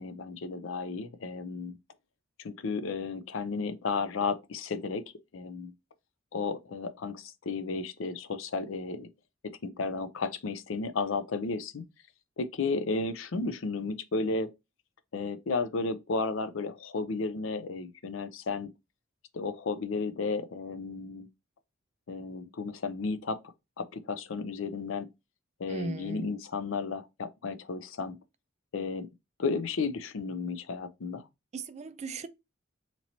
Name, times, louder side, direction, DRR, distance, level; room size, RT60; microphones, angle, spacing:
voice 1, 0.0-1.7 2.4-5.0 5.3-5.7 6.3-9.1 9.6-11.8 12.4-14.5 15.1-18.7 19.3-21.3 22.1-23.4 23.8-25.1 25.6-28.2 28.7-29.1 29.4-31.3, left 4 dB, 65° left, 0.5 m, -33 dB
voice 2, 25.7-26.3 31.5-32.3, right 3 dB, 35° right, 0.4 m, -37 dB
3.0 x 2.9 x 3.9 m
head